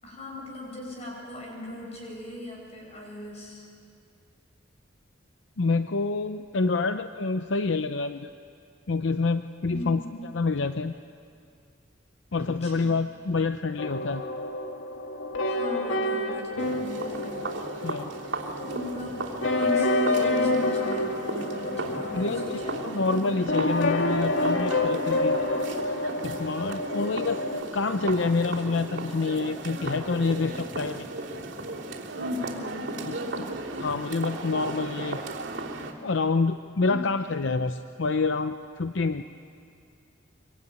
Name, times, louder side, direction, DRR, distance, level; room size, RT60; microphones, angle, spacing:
voice 1, 0.0-3.6 9.7-10.3 12.4-12.9 15.4-17.4 18.2-23.4 32.1-33.5 36.8-37.2, left 1 dB, 35° left, -1 dB, 7.5 m, -38 dB
voice 2, 5.6-8.3 8.9-10.0 10.3-10.9 12.3-14.2 17.8-18.1 22.1-25.4 26.2-31.1 33.1-33.5 33.8-35.2 36.0-39.2, left 3 dB, 65° left, 9 dB, 0.6 m, -27 dB
sound 1, 13.8-27.6, left 2 dB, 85° left, 1.9 m, -28 dB
sound 2, 16.6-35.9, right 2 dB, 60° right, 3.2 m, -36 dB
24.5 x 24.5 x 9.6 m, 2.4 s
head